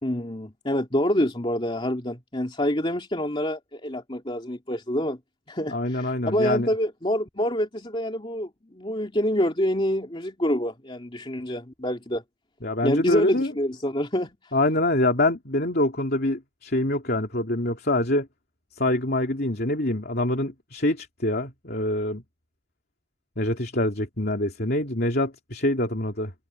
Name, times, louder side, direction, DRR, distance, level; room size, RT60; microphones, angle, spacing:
voice 1, 0.0-5.2 5.5-12.2 12.8-14.4, equal, 25° left, 2.7 m, -26 dB
voice 2, 5.7-6.7 12.6-13.5 14.5-18.3 18.8-22.2 23.4-26.3, left 1 dB, 45° left, 3.0 m, -25 dB
head